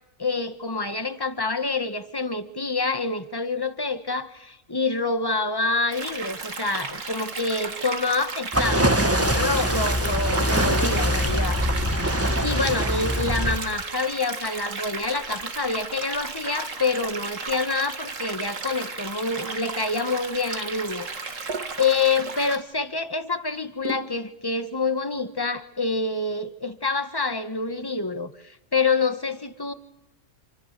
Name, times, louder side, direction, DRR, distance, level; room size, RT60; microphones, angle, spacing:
voice 1, 0.2-11.6 12.4-21.4 21.8-29.7, left 3 dB, 15° left, 9 dB, 1.4 m, -27 dB
sound 1, 5.9-22.6, right 4 dB, 55° right, 2.3 m, -34 dB
sound 2, 8.5-13.6, equal, 10° right, 1.5 m, -23 dB
sound 3, 21.5-21.8 23.8-24.2, right 2 dB, 70° right, 2.2 m, -32 dB
28.0 x 27.5 x 6.8 m, 0.91 s
omnidirectional pair, 1.7 m